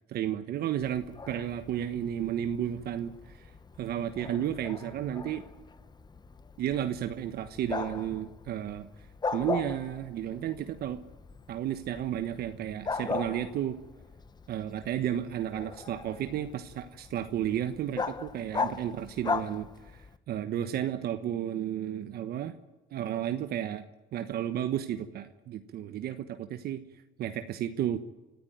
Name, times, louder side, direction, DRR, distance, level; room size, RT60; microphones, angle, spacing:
voice 1, 0.1-3.5 3.8-5.4 6.6-8.9 9.3-11.0 11.5-13.8 14.5-22.6 22.9-26.8 27.2-28.0, right 10 dB, 60° right, 9 dB, 1.2 m, -33 dB
Bark, 0.8-20.2, left 4 dB, 25° left, 1.1 m, -39 dB
26.0 x 14.5 x 9.2 m, 1.1 s
cardioid pair, 105°, 18 cm